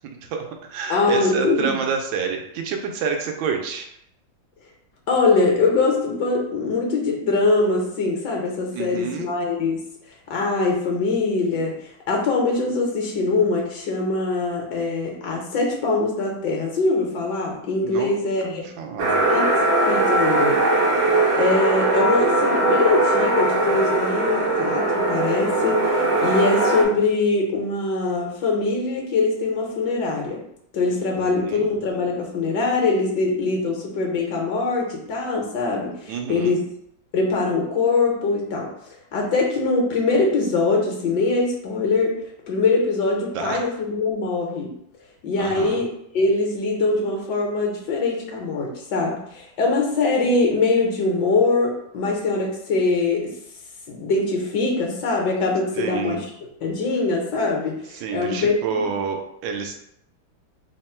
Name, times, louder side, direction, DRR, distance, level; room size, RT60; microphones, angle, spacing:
voice 1, 0.3-3.9 8.7-9.3 17.8-18.1 18.4-19.2 31.2-31.7 36.1-36.6 43.3-43.6 45.4-45.8 55.8-56.2 57.9-59.8, right 5 dB, 85° right, 3 dB, 1.3 m, -28 dB
voice 2, 0.9-1.8 5.1-9.8 10.3-18.6 19.3-19.5 19.9-20.6 21.4-30.4 30.7-36.6 37.1-38.7 39.1-42.2 42.5-44.7 45.2-45.9 46.1-53.3 53.9-56.3 56.6-58.7, left 3 dB, 70° left, -1 dB, 1.4 m, -22 dB
sound 1, 19.0-26.8, right 2 dB, 65° right, 0.7 m, -20 dB
3.6 x 2.1 x 4.3 m, 0.74 s
omnidirectional pair, 2.0 m